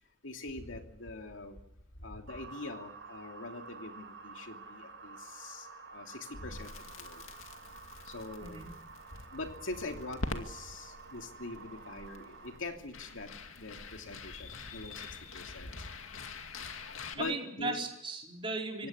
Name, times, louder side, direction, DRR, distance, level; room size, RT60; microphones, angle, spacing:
voice 1, 0.2-1.6 2.0-7.2 8.0-8.6 9.1-13.3 13.6-15.8 17.1-17.8 18.8-18.9, left 2 dB, 70° left, 4 dB, 2.9 m, -43 dB
sound 1, 2.3-12.6, right 4 dB, 65° right, 5.7 m, -50 dB
Crackle, 6.3-17.1, left 3 dB, 90° left, 2.4 m, -45 dB
voice 2, 8.4-8.7 17.2-18.9, right 3 dB, 25° right, 0 dB, 4.5 m, -37 dB
25.5 x 17.5 x 9.6 m, 0.81 s
head